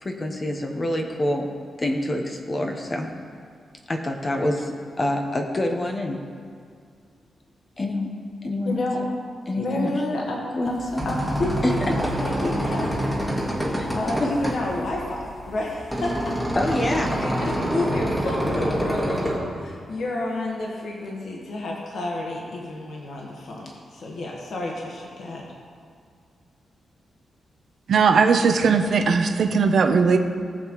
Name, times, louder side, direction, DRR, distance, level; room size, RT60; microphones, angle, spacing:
voice 1, 0.0-1.5 1.8-3.1 3.9-6.2 7.8-8.1 8.4-8.8 9.5-9.9 10.6-11.1 11.6-11.9 13.7-13.9 14.2-14.3 16.5-17.1, left 1 dB, 25° left, 3 dB, 0.9 m, -26 dB
voice 2, 8.6-9.0 9.6-12.9 13.9-16.4 16.9-25.4, left 2 dB, 60° left, -2 dB, 1.4 m, -30 dB
sound 1, 10.7-19.4, equal, 5° left, 1.6 m, -26 dB
voice 3, 27.9-30.2, right 5 dB, 60° right, 5 dB, 0.7 m, -18 dB
18.0 x 7.6 x 3.1 m, 2.2 s
wide cardioid pair, 155°, 0 cm